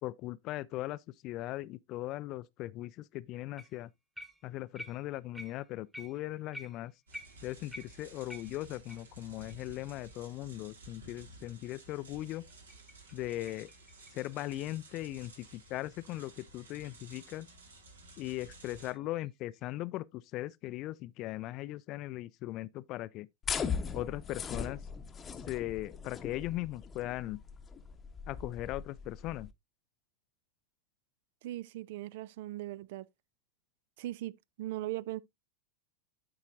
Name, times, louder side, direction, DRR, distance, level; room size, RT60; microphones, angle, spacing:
voice 1, 0.0-3.9 4.4-6.9 7.4-12.5 13.1-13.7 14.1-17.5 18.2-23.3 23.9-24.8 25.5-27.4 28.3-29.5, left 16 dB, 40° left, 0.4 m, -39 dB
sound 1, 3.6-3.8 4.2-9.1 9.5-9.6 10.1-10.2 10.7-10.8 12.5-15.3 18.1-19.6, equal, 5° right, 1.2 m, -51 dB
sound 2, 7.1-18.9, right 2 dB, 70° right, 1.9 m, -54 dB
sound 3, 23.4-29.5, left 6 dB, 20° left, 0.9 m, -39 dB
voice 2, 31.4-33.1 34.0-35.2, right 15 dB, 50° right, 0.4 m, -39 dB
12.5 x 4.8 x 2.6 m
figure-of-eight pair, 90°, 0 cm